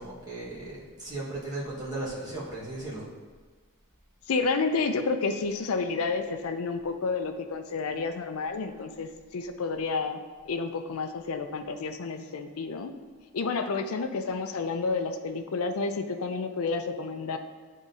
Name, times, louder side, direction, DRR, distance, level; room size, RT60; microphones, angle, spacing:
voice 1, 0.0-3.1, right 2 dB, 15° right, -7 dB, 1.4 m, -36 dB
voice 2, 4.3-10.2 10.5-12.9 13.3-17.4, left 4 dB, 75° left, 7 dB, 0.5 m, -30 dB
9.6 x 3.6 x 2.7 m, 1.5 s
head